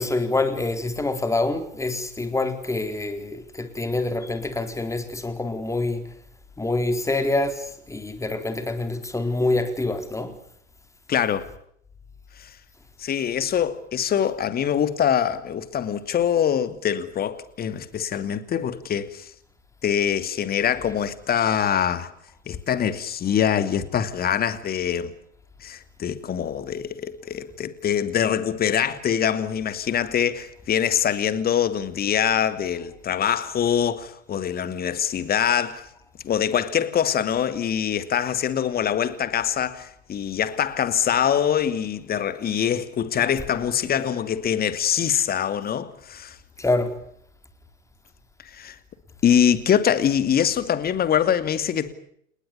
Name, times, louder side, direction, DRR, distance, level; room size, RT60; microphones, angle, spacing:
voice 1, 0.0-6.1 6.6-10.3 46.6-46.9, left 2 dB, 10° left, 4.3 m, -26 dB
voice 2, 11.1-11.5 12.4-12.5 13.0-19.3 19.8-22.1 22.5-25.1 25.6-35.9 36.2-46.4 48.4-48.8 49.2-51.9, left 9 dB, 25° left, 2.7 m, -24 dB
29.5 x 20.0 x 7.2 m
figure-of-eight pair, 90°, 37 cm